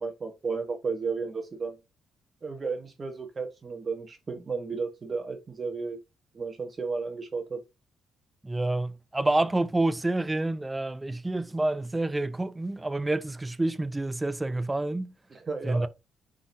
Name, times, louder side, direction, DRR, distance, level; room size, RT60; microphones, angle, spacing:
voice 1, 0.0-1.8 2.4-6.0 6.3-7.6 15.3-15.9, right 4 dB, 35° right, 1.2 m, -33 dB
voice 2, 8.4-15.1 15.6-15.9, right 2 dB, 15° right, 0.5 m, -28 dB
9.9 x 3.9 x 2.7 m
cardioid pair, 90°, 0 cm